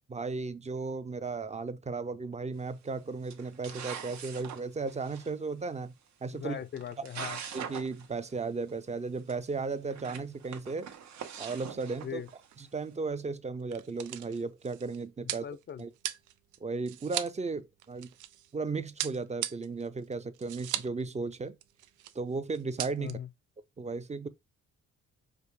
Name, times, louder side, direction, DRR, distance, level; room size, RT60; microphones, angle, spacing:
voice 1, 0.1-5.9 6.2-6.6 7.5-10.9 11.4-12.2 12.6-15.4 15.8-15.9 16.6-18.1 18.5-21.6 22.1-23.2 23.8-24.3, right 4 dB, 20° right, 0.6 m, -35 dB
sound 1, 2.6-2.9 3.3-5.3 6.4-6.5 6.7-8.1 8.3-8.4 8.7-8.8 9.3-9.4 9.8-12.6, right 8 dB, 65° right, 1.2 m, -43 dB
voice 2, 6.3-7.4 12.0-12.3 15.2-15.8 23.0-23.3, left 9 dB, 35° left, 0.5 m, -40 dB
sound 2, 12.1-12.2 12.5-12.6 13.4-18.5 19.0-21.0 21.3-21.4 21.6-22.2 22.5-23.1, right 13 dB, 85° right, 0.6 m, -38 dB
5.1 x 2.2 x 4.8 m
cardioid pair, 90°, 30 cm